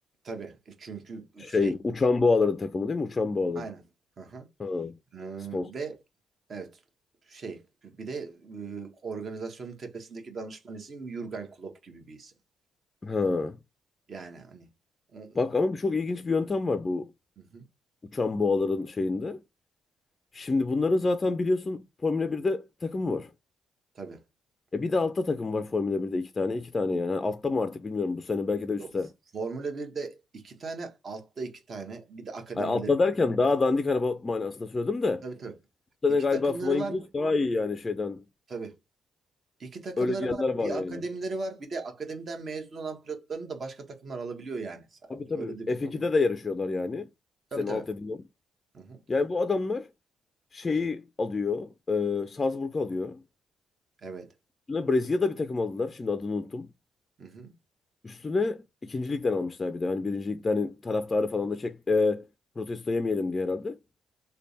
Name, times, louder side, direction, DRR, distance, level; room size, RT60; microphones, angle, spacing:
voice 1, 0.2-1.7 3.5-3.8 4.2-4.5 5.1-6.0 6.5-6.8 7.3-12.3 14.1-14.7 15.1-15.4 17.5-17.6 23.9-24.2 28.8-28.9 29.3-32.9 35.2-35.5 36.3-37.0 38.5-38.8 39.6-45.0 45.3-46.0 47.5-47.9 48.7-49.0 54.0-54.3 57.2-57.5, right 4 dB, 45° right, 1.1 m, -38 dB
voice 2, 1.4-3.7 4.6-5.0 5.5-5.7 13.0-13.6 15.3-17.1 18.1-19.4 20.3-23.3 24.7-29.1 32.6-35.2 36.0-38.2 40.0-41.0 45.1-47.1 47.6-48.2 49.1-49.9 50.5-53.2 54.7-56.7 58.0-62.3 62.6-63.8, left 3 dB, 30° left, 0.4 m, -27 dB
3.3 x 2.2 x 4.0 m
cardioid pair, 90°, 0 cm